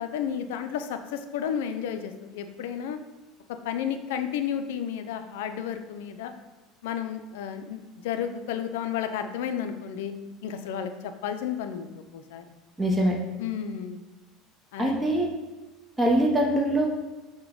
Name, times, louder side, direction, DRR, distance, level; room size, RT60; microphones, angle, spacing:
voice 1, 0.0-3.0 3.6-6.3 6.8-10.1 10.4-12.4 13.4-14.0 14.7-15.0, left 8 dB, 80° left, 8 dB, 0.3 m, -32 dB
voice 2, 12.8-13.2 14.8-15.3 16.0-16.9, right 1 dB, 15° right, 0 dB, 0.7 m, -23 dB
4.5 x 2.1 x 3.7 m, 1.1 s
hypercardioid pair, 90°, 0 cm